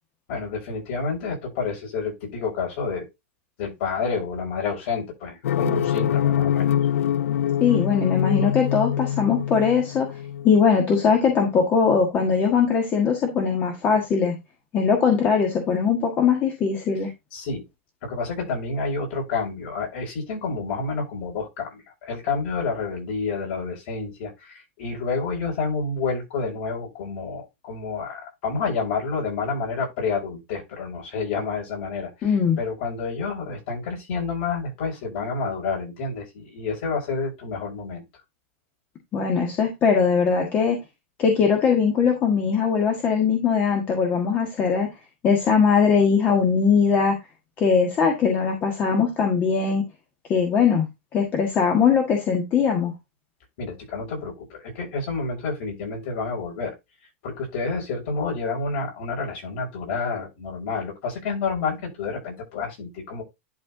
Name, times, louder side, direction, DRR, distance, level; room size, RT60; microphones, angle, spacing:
voice 1, 0.3-3.1 3.6-6.7 17.3-17.6 18.0-32.3 32.6-38.0 53.6-56.7 57.2-63.2, left 4 dB, 50° left, 6.2 m, -29 dB
sound 1, 5.4-10.5, left 10 dB, 90° left, 0.4 m, -24 dB
voice 2, 7.6-10.1 10.4-14.3 14.7-17.1 32.2-32.6 39.1-40.8 41.2-44.9 45.2-47.1 47.6-49.8 50.3-52.9, left 6 dB, 25° left, 1.6 m, -20 dB
11.0 x 4.3 x 3.8 m
supercardioid pair, 160°, 7 cm